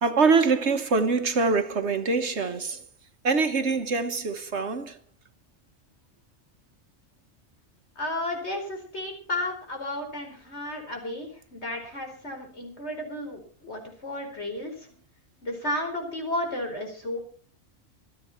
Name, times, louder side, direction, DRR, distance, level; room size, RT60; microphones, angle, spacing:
voice 1, 0.0-2.8 3.2-5.0, right 4 dB, 60° right, 1.4 m, -24 dB
voice 2, 7.9-14.9 15.4-17.2, left 1 dB, 55° left, 4.9 m, -33 dB
26.0 x 9.1 x 4.3 m
omnidirectional pair, 1.3 m